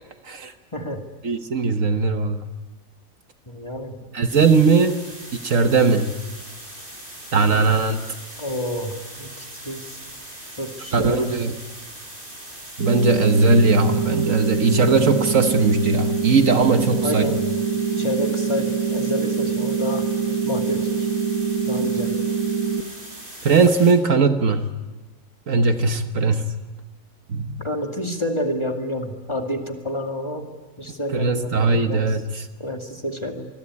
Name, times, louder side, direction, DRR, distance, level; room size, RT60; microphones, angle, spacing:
voice 1, 0.7-1.0 3.5-4.0 8.4-10.0 10.6-11.3 17.0-17.4 17.9-20.1 20.4-20.9 21.7-22.1 27.6-30.5 30.8-32.2 32.6-33.5, equal, 20° left, 4 dB, 2.3 m, -29 dB
voice 2, 1.2-2.4 4.1-5.0 5.4-6.1 7.3-8.0 10.9-11.5 12.8-17.2 23.4-24.7 25.5-26.5 27.3-27.6 31.1-32.5, right 4 dB, 60° right, 8 dB, 1.5 m, -19 dB
sound 1, 4.3-23.9, right 1 dB, 35° right, 6.6 m, -40 dB
sound 2, 12.8-22.8, right 6 dB, 80° right, 1.7 m, -24 dB
26.0 x 21.5 x 9.7 m, 1.2 s
omnidirectional pair, 1.6 m